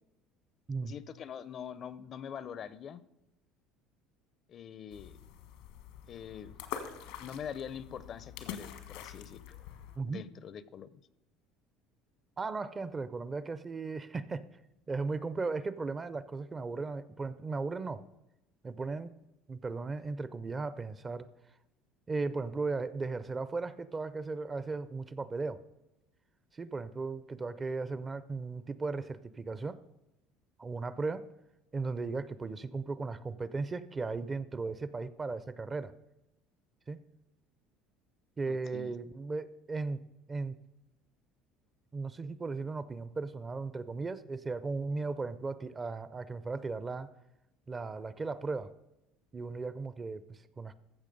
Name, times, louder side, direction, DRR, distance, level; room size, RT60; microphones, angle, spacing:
voice 1, 0.8-3.0 4.5-5.2 6.1-6.6 7.2-9.4 10.0-11.0 38.5-38.9, left 8 dB, 35° left, 17 dB, 0.5 m, -44 dB
sound 1, 4.9-10.0, left 9 dB, 90° left, 1.5 m, -45 dB
voice 2, 12.4-14.5 14.9-18.0 18.6-19.1 19.5-21.3 22.1-25.6 26.5-29.8 30.6-31.3 31.7-35.9 36.9-37.0 38.4-40.0 40.3-40.6 41.9-47.1 47.7-48.7 49.3-50.7, right 3 dB, 20° right, 15 dB, 0.4 m, -36 dB
15.0 x 6.1 x 5.2 m, 0.93 s
cardioid pair, 145°, 0 cm